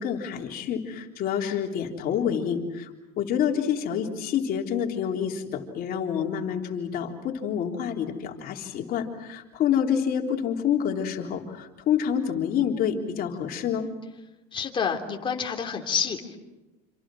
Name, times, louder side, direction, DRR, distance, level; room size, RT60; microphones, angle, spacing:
voice 1, 0.0-2.9 3.2-13.9, left 8 dB, 45° left, 1 dB, 3.7 m, -27 dB
voice 2, 14.5-16.4, left 6 dB, 25° left, 3 dB, 3.3 m, -28 dB
27.5 x 26.5 x 6.3 m, 1.1 s
supercardioid pair, 125°, 21 cm